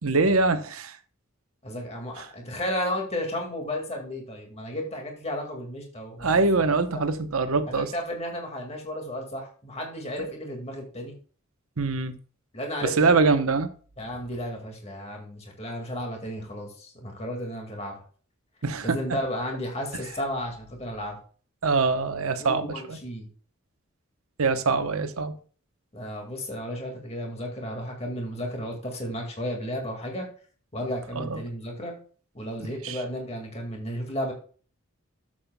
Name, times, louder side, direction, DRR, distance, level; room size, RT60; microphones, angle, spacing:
voice 1, 0.0-1.0 2.2-2.3 6.2-7.9 11.8-12.1 12.8-13.7 18.6-19.0 21.6-23.0 24.4-25.3 31.1-31.4 32.6-33.0, right 4 dB, 85° right, 0.9 m, -24 dB
voice 2, 1.6-6.4 6.9-7.0 7.7-11.2 12.5-13.2 14.0-18.0 18.8-21.2 22.4-23.3 25.9-30.3 30.7-32.0 32.3-34.3, equal, 30° left, 2.0 m, -33 dB
12.5 x 7.6 x 2.2 m
head